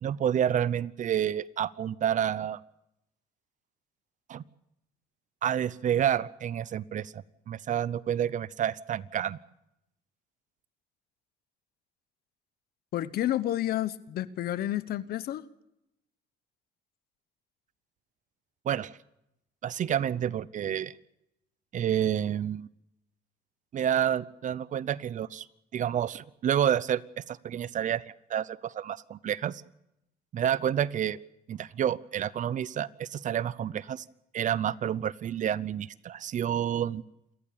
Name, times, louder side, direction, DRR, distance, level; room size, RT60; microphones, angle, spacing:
voice 1, 0.0-2.6 4.3-4.4 5.4-9.4 18.6-19.0 19.6-20.9 21.7-22.7 23.7-25.5 25.7-28.0 28.3-29.6 30.3-31.2 31.5-34.0 34.3-37.0, right 9 dB, 50° right, 20 dB, 0.7 m, -29 dB
voice 2, 12.9-15.4, left 13 dB, 65° left, 16 dB, 1.2 m, -30 dB
28.5 x 14.5 x 8.7 m, 0.85 s
cardioid pair, 110°, 17 cm